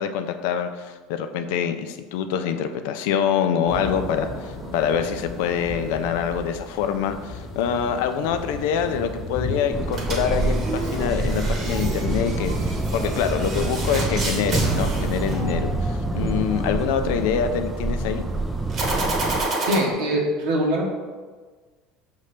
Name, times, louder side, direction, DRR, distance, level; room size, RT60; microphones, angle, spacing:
voice 1, 0.0-12.5 12.9-18.2, left 7 dB, 70° left, 8 dB, 0.3 m, -25 dB
sound 1, 3.7-19.4, left 2 dB, 15° left, 1.1 m, -36 dB
sound 2, 9.7-19.4, right 2 dB, 15° right, 0.4 m, -27 dB
sound 3, 9.9-16.0 18.7-19.8, right 2 dB, 45° right, 1.0 m, -29 dB
voice 2, 19.7-20.8, equal, 75° right, -2 dB, 0.9 m, -22 dB
5.1 x 2.7 x 3.3 m, 1.4 s
hypercardioid pair, 80°, 0 cm